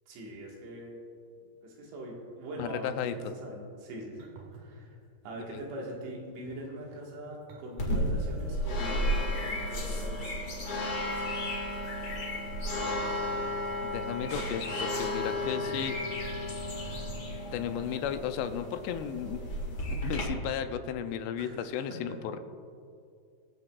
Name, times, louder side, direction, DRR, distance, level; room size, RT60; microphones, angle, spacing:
voice 1, 0.1-1.0 1.6-5.0 5.2-10.7 14.3-14.4 21.4-22.2, right 1 dB, 90° right, -2 dB, 3.9 m, -42 dB
voice 2, 2.6-3.3 5.5-5.6 13.8-16.0 17.5-19.4 19.9-22.4, left 8 dB, 85° left, 9 dB, 2.7 m, -34 dB
sound 1, 2.7-3.4 4.2-4.7 5.5-5.7 6.3-8.4 9.6-10.1 10.7-11.1 11.4-11.8 12.2-12.3 12.8-13.1 13.6-14.0 14.4-14.8 15.4-16.0 16.5-17.4 18.3-18.5, right 3 dB, 65° right, 2.1 m, -51 dB
sound 2, 7.8-20.2, left 1 dB, 65° left, 0.9 m, -33 dB
23.5 x 7.8 x 2.4 m, 2.4 s
omnidirectional pair, 4.8 m